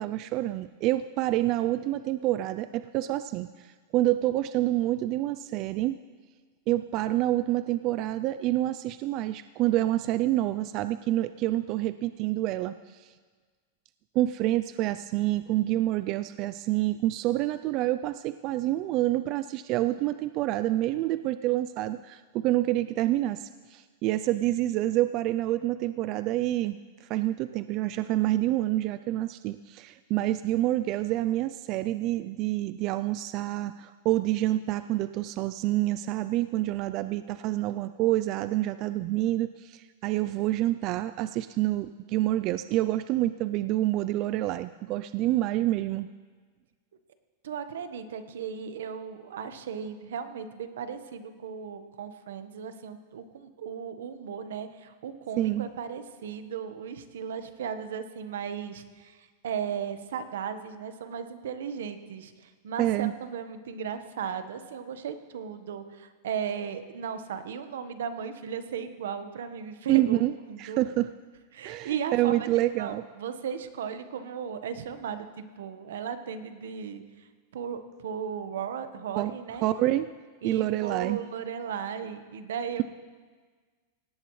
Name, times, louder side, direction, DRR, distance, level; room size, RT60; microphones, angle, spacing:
voice 1, 0.0-6.0 6.7-13.1 14.1-46.1 55.4-55.7 62.8-63.1 69.9-70.3 70.6-71.1 71.6-73.0 79.1-79.3 79.6-80.1 80.4-81.2, right 15 dB, 45° right, 13 dB, 0.4 m, -27 dB
voice 2, 47.4-70.8 71.5-77.0 77.5-79.8 80.4-82.8, right 7 dB, 80° right, 10 dB, 1.2 m, -36 dB
17.5 x 17.5 x 3.2 m, 1.5 s
supercardioid pair, 130°, 0 cm